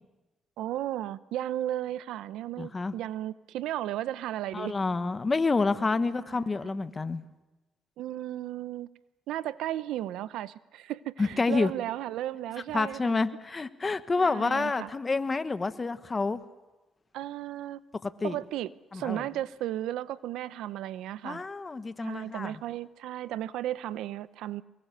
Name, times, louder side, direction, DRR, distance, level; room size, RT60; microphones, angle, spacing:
voice 1, 0.6-4.8 6.0-6.8 8.0-8.9 9.3-13.2 14.2-14.9 17.1-17.8 18.2-21.4 22.0-24.6, right 13 dB, 90° right, 16 dB, 0.7 m, -35 dB
voice 2, 2.6-2.9 4.5-7.2 11.2-11.7 12.7-16.4 18.0-18.4 18.9-19.2 21.2-22.5, left 3 dB, 30° left, 11 dB, 1.2 m, -28 dB
24.0 x 21.5 x 6.7 m, 1.1 s
cardioid pair, 90°, 0 cm